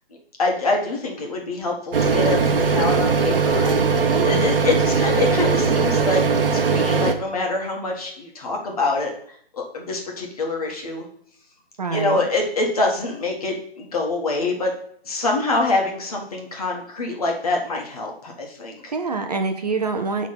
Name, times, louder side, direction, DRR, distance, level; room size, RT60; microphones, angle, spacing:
voice 1, 0.4-6.2 6.5-11.0 11.9-14.7 15.0-18.9, left 3 dB, 35° left, 0 dB, 1.7 m, -25 dB
sound 1, 1.9-7.1, right 5 dB, 65° right, 1.0 m, -19 dB
voice 2, 4.1-4.5 11.8-12.2 18.9-20.3, right 4 dB, 40° right, 5 dB, 0.7 m, -26 dB
7.3 x 3.7 x 5.7 m, 0.62 s
hypercardioid pair, 165°, 31 cm